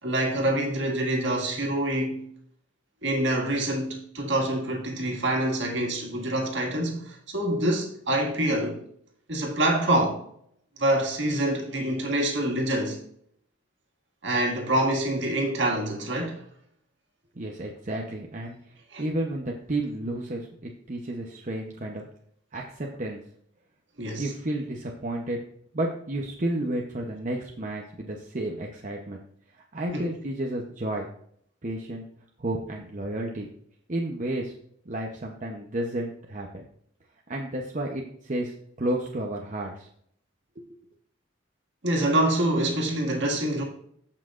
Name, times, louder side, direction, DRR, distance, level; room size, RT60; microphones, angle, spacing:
voice 1, 0.0-2.3 3.0-8.8 9.3-10.2 10.8-13.0 14.2-16.4 18.9-19.0 24.0-24.3 29.9-30.1 41.8-43.6, right 1 dB, 65° right, 2.0 m, -26 dB
voice 2, 17.4-18.6 19.0-22.1 22.5-23.2 24.2-25.4 25.7-29.2 29.7-31.1 31.6-32.1 32.4-33.5 33.9-34.5 34.9-36.6 37.3-39.9 40.6-40.7, right 1 dB, 40° right, 0.8 m, -31 dB
14.0 x 5.8 x 2.5 m
head